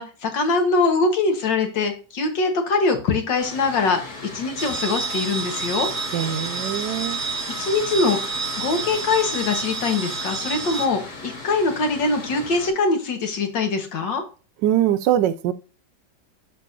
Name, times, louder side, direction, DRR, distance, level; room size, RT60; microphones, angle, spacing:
voice 1, 0.0-5.9 7.6-8.2 8.6-14.2, left 3 dB, 85° left, 2.1 m, -23 dB
Mechanical fan, 3.4-12.7, left 2 dB, 65° left, 2.8 m, -37 dB
sound 1, 4.6-10.9, right 4 dB, 20° right, 0.4 m, -30 dB
voice 2, 6.1-7.2 14.6-15.5, right 11 dB, 80° right, 1.2 m, -22 dB
12.0 x 4.1 x 2.7 m
omnidirectional pair, 1.9 m